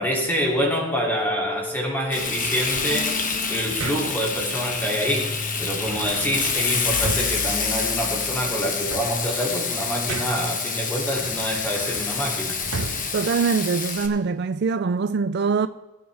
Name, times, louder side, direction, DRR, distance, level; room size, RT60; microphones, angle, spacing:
voice 1, 0.0-3.2 3.5-12.6, equal, 10° left, 2.9 m, -26 dB
sound 1, 0.9-8.8, left 2 dB, 65° left, 2.6 m, -37 dB
Frying (food), 2.1-14.1, left 5 dB, 40° left, 1.3 m, -27 dB
sound 2, 2.7-4.4 5.8-8.3 8.7-10.6 11.1-14.2, right 3 dB, 90° right, 1.0 m, -37 dB
voice 2, 13.1-15.7, right 5 dB, 50° right, 0.4 m, -23 dB
21.0 x 8.7 x 3.5 m
head